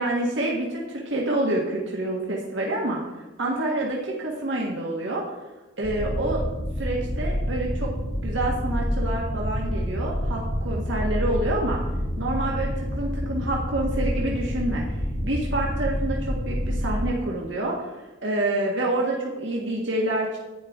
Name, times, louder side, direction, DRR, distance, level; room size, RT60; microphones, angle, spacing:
voice 1, 0.0-3.0 3.4-5.2 5.8-6.4 6.8-7.9 8.2-11.8 12.2-14.8 15.2-17.8 18.2-20.4, right 1 dB, 70° right, -2 dB, 1.7 m, -27 dB
sound 1, 5.8-17.1, equal, 60° left, 1.8 m, -28 dB
11.0 x 9.4 x 3.7 m, 1.1 s
head